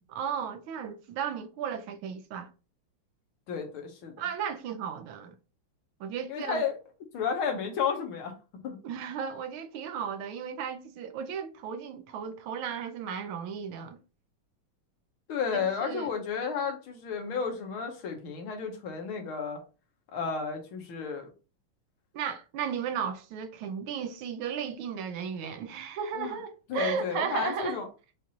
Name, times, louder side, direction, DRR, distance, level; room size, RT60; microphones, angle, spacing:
voice 1, 0.1-2.5 4.2-5.3 6.0-6.6 8.8-14.0 15.6-16.1 22.1-27.8, right 7 dB, 80° right, 1.4 m, -35 dB
voice 2, 3.5-4.2 6.3-6.8 7.1-8.3 8.6-8.8 15.3-19.6 20.1-21.3 26.1-26.4 26.7-27.9, left 6 dB, 75° left, 1.8 m, -32 dB
5.9 x 2.5 x 2.8 m
omnidirectional pair, 2.3 m